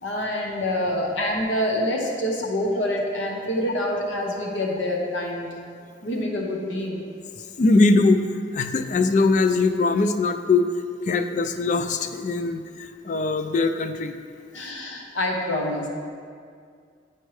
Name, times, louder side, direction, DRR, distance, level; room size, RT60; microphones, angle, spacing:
voice 1, 0.0-5.5 6.0-7.0 14.5-15.9, left 1 dB, 90° left, 0 dB, 0.9 m, -26 dB
voice 2, 7.6-8.2 8.5-10.7 11.1-14.2, left 3 dB, 40° left, 8 dB, 0.3 m, -21 dB
10.0 x 4.4 x 3.2 m, 2.2 s
head